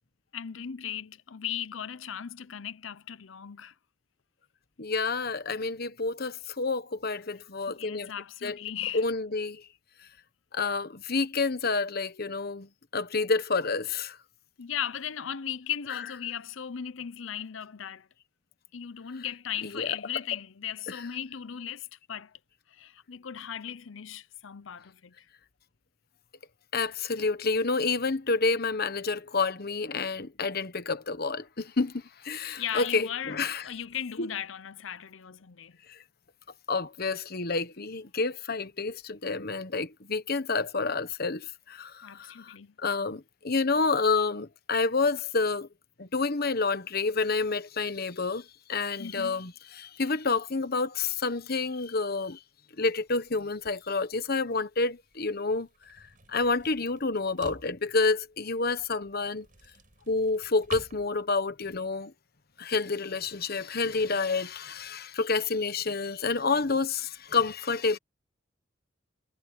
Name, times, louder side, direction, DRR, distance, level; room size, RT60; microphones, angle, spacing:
voice 1, 0.3-3.7 7.8-9.1 14.6-18.1 18.7-22.3 22.7-25.1 32.4-35.8 42.0-42.7 49.0-49.4, left 9 dB, 75° left, 0.7 m, -37 dB
voice 2, 4.8-8.1 8.4-8.6 8.9-9.6 10.5-14.2 19.6-19.9 20.9-21.0 26.7-33.7 34.2-34.3 35.9-36.0 36.7-45.7 46.0-52.4 52.8-56.0 56.3-59.5 60.1-62.1 62.6-68.0, left 4 dB, 50° left, 1.2 m, -29 dB
sound 1, 53.1-61.8, right 3 dB, 45° right, 5.6 m, -51 dB
head